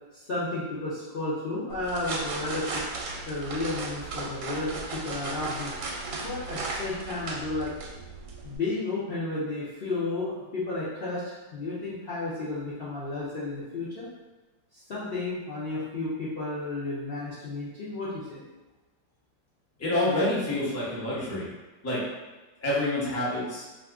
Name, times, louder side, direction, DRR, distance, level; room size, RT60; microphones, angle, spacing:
voice 1, 0.1-2.8 3.3-5.8 6.2-7.7 8.4-14.1 14.7-18.4, left 2 dB, 85° left, -10 dB, 0.5 m, -32 dB
sound 1, 1.7-8.6, right 3 dB, 85° right, 1.2 m, -36 dB
voice 2, 19.8-21.5 21.8-22.0 22.6-23.7, left 1 dB, 25° left, -8 dB, 0.3 m, -27 dB
2.8 x 2.4 x 3.4 m, 1.1 s
omnidirectional pair, 1.9 m